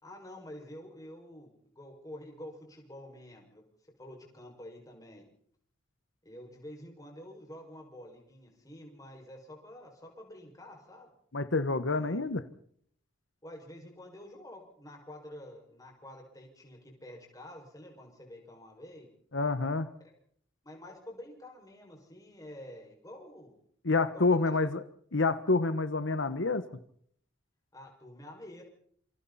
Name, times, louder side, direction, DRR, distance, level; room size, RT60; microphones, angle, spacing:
voice 1, 0.0-3.6 4.0-5.3 6.2-11.1 11.8-12.4 13.4-19.1 20.6-23.5 24.1-24.6 27.7-28.6, left 1 dB, 20° left, 1 dB, 6.0 m, -48 dB
voice 2, 11.3-12.4 19.3-19.9 23.8-24.8 25.1-26.6, left 3 dB, 85° left, 11 dB, 1.2 m, -28 dB
27.5 x 26.5 x 4.2 m, 0.63 s
head